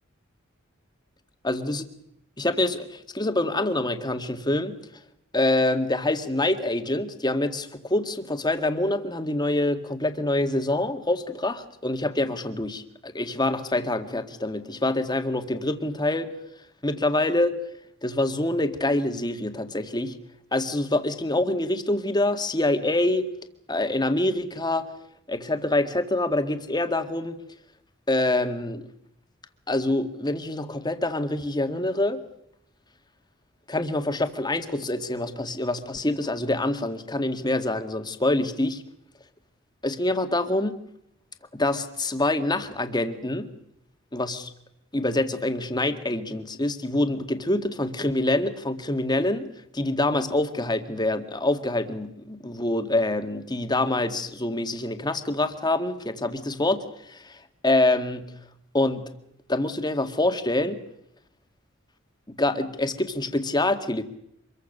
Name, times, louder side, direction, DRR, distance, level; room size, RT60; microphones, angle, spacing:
voice 1, 1.4-1.8 2.4-4.8 5.3-16.3 16.8-17.5 18.0-20.1 20.5-23.3 23.7-24.9 25.3-27.4 28.1-28.8 29.7-32.2 33.7-38.8 39.8-40.8 41.6-43.5 44.1-44.5 44.9-57.4 57.6-58.3 58.7-59.0 59.5-60.8 62.4-64.0, left 2 dB, 20° left, 8 dB, 1.9 m, -26 dB
25.5 x 22.5 x 6.7 m, 0.77 s
head